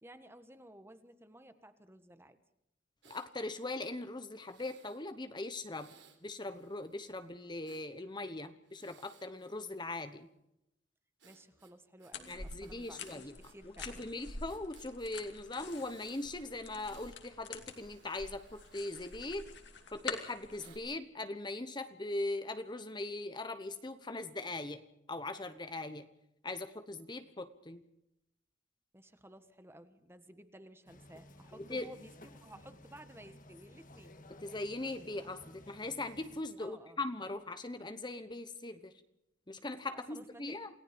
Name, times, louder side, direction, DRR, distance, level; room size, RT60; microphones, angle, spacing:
voice 1, 0.0-2.4 11.2-14.1 28.9-34.2 36.6-37.0 39.9-40.6, right 1 dB, 10° right, 10 dB, 1.4 m, -55 dB
Breathing, 3.0-3.3 4.4-5.0 5.7-7.9 8.6-10.3 11.2-13.6 13.8-13.9 14.5-15.1 15.6-16.3 16.7-17.2 17.6-19.8 20.6-20.8, right 6 dB, 65° right, 3.9 m, -64 dB
voice 2, 3.1-5.9 6.2-10.3 12.3-13.3 13.8-19.5 19.9-24.8 25.1-26.1 26.4-27.8 31.5-31.9 34.4-38.9 39.5-40.7, left 2 dB, 25° left, 10 dB, 1.0 m, -40 dB
sound 1, 12.1-20.8, left 4 dB, 60° left, 2.7 m, -47 dB
sound 2, 30.9-36.4, left 1 dB, 45° left, 1.7 m, -55 dB
28.5 x 18.0 x 5.2 m, 0.83 s
head